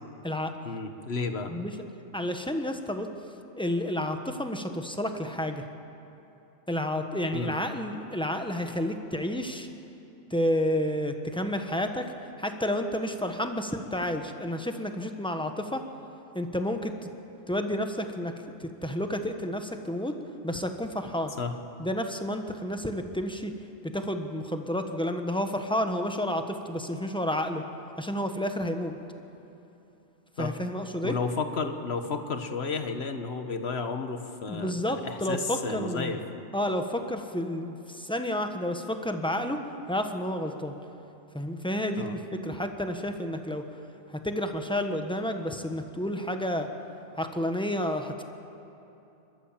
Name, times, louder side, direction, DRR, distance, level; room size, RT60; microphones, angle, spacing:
voice 1, 0.6-1.5 7.3-7.5 21.4-21.6 30.4-30.6 31.0-36.2 42.0-42.2, left 4 dB, 55° left, 7 dB, 1.6 m, -32 dB
voice 2, 2.1-3.1 3.6-5.6 6.7-9.7 10.3-12.0 12.4-15.8 16.3-16.9 17.5-18.3 18.6-20.1 20.4-21.3 21.8-23.5 23.9-27.6 28.0-28.9 30.4-31.1 34.5-36.2 36.5-39.6 39.9-40.7 41.3-43.6 44.1-46.7 47.2-48.2, left 1 dB, 5° left, 5 dB, 1.1 m, -30 dB
28.5 x 13.0 x 7.4 m, 2.9 s
omnidirectional pair, 1.3 m